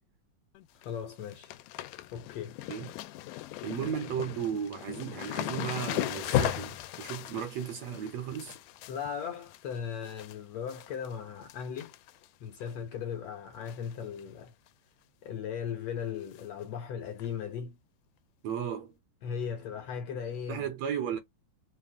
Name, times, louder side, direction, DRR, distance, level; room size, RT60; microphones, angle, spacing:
sound 1, 0.5-0.9 1.1-10.3 10.7-11.1 11.4-12.3 12.6-12.7 13.7-13.9 14.2-14.3 14.7-14.8 16.3-16.4 17.2-17.3, left 14 dB, 90° left, 2.1 m, -37 dB
voice 1, 0.7-1.5 2.1-2.6 8.9-11.9 12.4-14.5 15.2-17.8 19.2-20.7, left 7 dB, 75° left, 1.6 m, -37 dB
voice 2, 3.6-8.6 18.4-18.9 20.5-21.2, right 8 dB, 70° right, 1.7 m, -35 dB
5.6 x 2.5 x 3.5 m
omnidirectional pair, 3.6 m